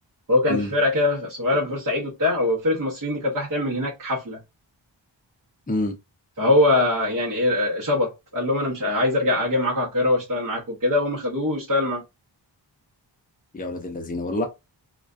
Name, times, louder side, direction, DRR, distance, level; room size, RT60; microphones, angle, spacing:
voice 1, 0.3-4.4 6.4-12.0, left 2 dB, 45° right, 0.9 m, -22 dB
voice 2, 13.5-14.5, left 1 dB, 20° left, 0.6 m, -27 dB
2.4 x 2.2 x 2.4 m
wide cardioid pair, 70°, 45 cm